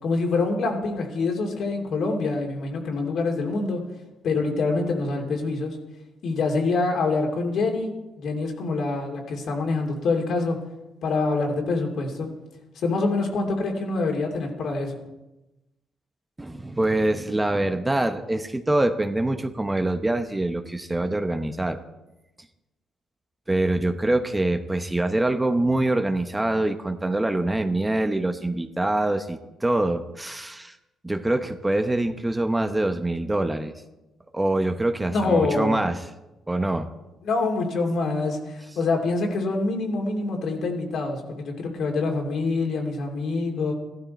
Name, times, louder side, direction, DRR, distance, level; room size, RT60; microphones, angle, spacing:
voice 1, 0.0-3.8 4.2-5.8 6.2-10.6 11.0-12.3 12.7-15.0 35.1-35.8 37.2-43.7, left 3 dB, 70° left, 1 dB, 2.8 m, -25 dB
voice 2, 16.4-21.8 23.5-30.8 31.0-33.7 34.3-36.0 36.5-36.9, right 2 dB, 15° right, 7 dB, 0.9 m, -24 dB
14.5 x 12.5 x 4.3 m, 1.0 s
cardioid pair, 90°, 0 cm